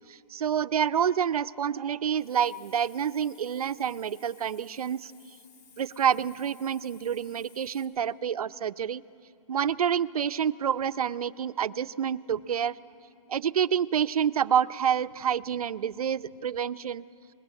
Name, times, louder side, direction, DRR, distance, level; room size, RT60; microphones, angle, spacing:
voice 1, 0.1-5.1 5.8-9.0 9.5-12.7 13.3-17.0, right 8 dB, 85° right, 13 dB, 0.7 m, -28 dB
Hiss, 2.1-7.9, left 5 dB, 35° left, 3.0 m, -57 dB
24.5 x 20.5 x 8.3 m, 2.6 s
hypercardioid pair, 175°, 18 cm